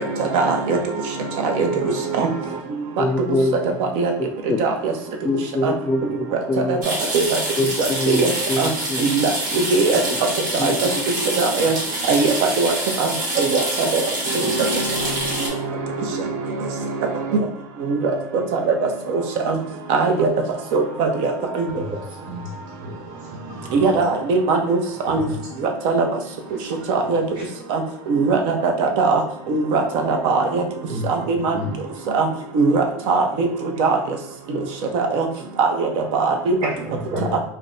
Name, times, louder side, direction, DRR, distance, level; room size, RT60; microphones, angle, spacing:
voice 1, 0.2-0.8 1.4-2.3 4.0-4.1 4.6-4.9 5.6-5.7 6.7-6.8 7.1-7.4 8.1-8.3 8.6-8.7 9.0-10.0 10.6-10.7 11.4-11.7 12.1-13.1 13.4-14.0 14.3-14.7 17.9-18.1 18.5-18.7 19.1-19.6 19.9-20.3 20.7-21.7 23.7-24.8 25.1-25.2 25.8-26.0 26.9-27.2 27.7-27.8 28.1-29.2 29.5-30.6 31.1-31.5 32.1-32.3 32.5-33.5 33.8-34.0 34.9-35.3 35.6-36.5 37.3-37.4, right 4 dB, 65° right, 3 dB, 0.6 m, -20 dB
voice 2, 3.0-3.6 4.5-4.8 5.2-6.8 7.6-9.1 10.0-10.2 10.6-11.1, left 2 dB, 25° left, 8 dB, 0.4 m, -24 dB
sound 1, 6.8-15.5, right 1 dB, 85° right, 1.1 m, -26 dB
voice 3, 22.2-22.9 23.5-23.9 25.1-25.3 26.8-26.9 27.3-27.4 30.9-31.0 31.5-31.7 36.6-37.4, equal, 50° right, -4 dB, 1.1 m, -31 dB
2.5 x 2.1 x 3.7 m, 0.65 s
supercardioid pair, 100°, 10 cm